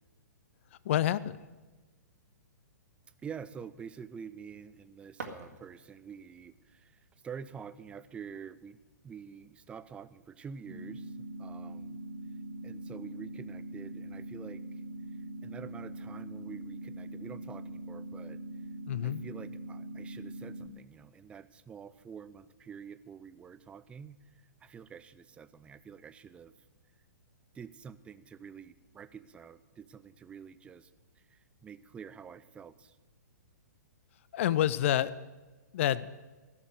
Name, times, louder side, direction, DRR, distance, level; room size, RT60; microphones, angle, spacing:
voice 1, 0.9-1.4 18.9-19.2 34.3-35.1 35.7-36.1, left 12 dB, 45° left, 18 dB, 0.4 m, -28 dB
voice 2, 3.2-12.0 12.6-14.8 15.4-18.4 19.0-26.5 27.5-30.9 31.2-33.0, right 7 dB, 10° right, 14 dB, 0.4 m, -47 dB
sound 1, 5.1-6.2, right 3 dB, 70° right, 2.0 m, -46 dB
sound 2, 10.7-20.7, right 2 dB, 50° right, 1.7 m, -42 dB
16.0 x 7.1 x 7.8 m, 1.2 s
figure-of-eight pair, 115°, 9 cm